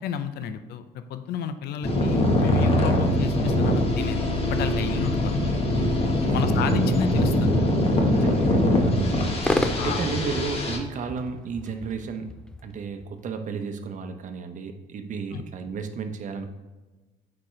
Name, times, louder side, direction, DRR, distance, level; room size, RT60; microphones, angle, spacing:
voice 1, 0.0-4.2 4.5-5.4 6.3-7.5 9.8-10.0 15.3-15.4, left 7 dB, 70° left, 10 dB, 0.6 m, -31 dB
sound 1, 1.8-10.8, left 1 dB, 35° left, 1.2 m, -23 dB
voice 2, 8.1-9.2 9.4-12.3 12.6-16.5, right 5 dB, 50° right, 7 dB, 0.8 m, -33 dB
sound 2, 8.3-13.2, left 1 dB, 5° left, 0.4 m, -33 dB
8.5 x 4.4 x 3.2 m, 1.2 s
cardioid pair, 110°, 17 cm